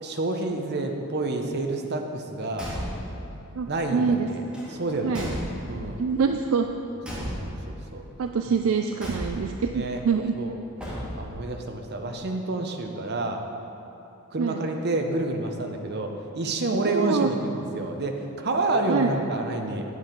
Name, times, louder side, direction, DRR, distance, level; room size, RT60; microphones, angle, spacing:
voice 1, 0.0-2.7 3.7-4.4 4.7-5.3 5.7-6.0 7.1-7.2 7.7-8.0 8.5-8.6 9.7-10.0 10.3-10.6 11.1-13.4 14.3-19.8, right 2 dB, 50° right, 3 dB, 0.8 m, -28 dB
Car / Truck / Slam, 2.5-3.2 4.5-5.9 7.0-7.8 9.0-9.7 10.8-11.4, equal, 5° right, 1.8 m, -34 dB
voice 2, 3.6-4.3 5.0-5.3 6.0-6.7 8.2-10.3 14.4-14.7 16.8-17.3 18.9-19.1, right 5 dB, 70° right, 5 dB, 0.4 m, -25 dB
9.4 x 7.6 x 5.2 m, 2.8 s
head